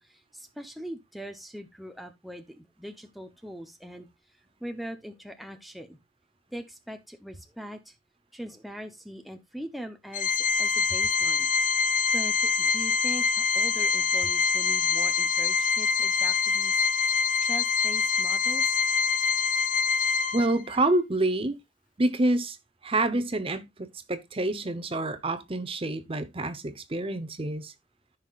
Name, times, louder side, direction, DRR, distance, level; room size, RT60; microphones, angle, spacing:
voice 1, 0.0-6.0 6.5-7.9 8.3-11.5 12.1-18.8, equal, ahead, 0.7 m, -41 dB
Organ, 10.1-20.7, left 5 dB, 45° left, 0.7 m, -25 dB
voice 2, 20.3-21.6 22.0-22.6 22.8-27.7, right 2 dB, 30° right, 0.9 m, -27 dB
14.0 x 5.6 x 2.4 m
head